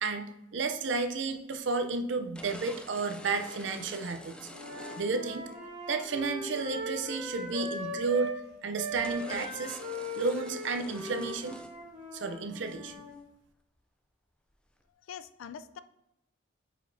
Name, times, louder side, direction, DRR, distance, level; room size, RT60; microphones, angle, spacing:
voice 1, 0.0-4.5 5.0-5.5 5.9-8.3 8.6-9.8 10.2-11.6 12.1-12.9, right 4 dB, 60° right, 8 dB, 0.6 m, -32 dB
sound 1, 1.3-1.4 2.3-5.5 6.0-6.2 8.1-8.2 8.5-8.6 9.0-11.8 12.0-12.1 12.5-13.2, left 1 dB, 5° left, 0.3 m, -47 dB
Wind instrument woodwind instrument, 4.5-8.4 8.7-13.1, equal, 30° right, 2.1 m, -39 dB
voice 2, 15.0-15.8, left 8 dB, 80° left, 14 dB, 0.4 m, -44 dB
8.6 x 5.0 x 2.6 m, 0.89 s
head